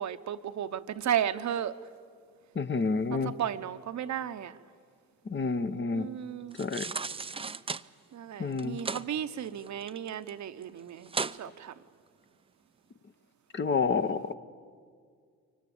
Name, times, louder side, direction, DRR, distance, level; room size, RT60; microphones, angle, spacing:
voice 1, 0.0-1.8 3.1-4.6 5.9-6.6 8.1-11.7, right 9 dB, 55° right, 0.9 m, -34 dB
voice 2, 2.5-3.3 5.3-6.1 6.6-6.9 8.4-8.8 13.5-14.3, left 4 dB, 35° left, 1.0 m, -29 dB
sound 1, 6.5-7.8 8.5-9.0 9.4-10.3 10.6-10.7 11.1-11.4 11.9-12.0, right 4 dB, 15° right, 0.5 m, -35 dB
24.0 x 17.5 x 8.6 m
supercardioid pair, 60°, 34 cm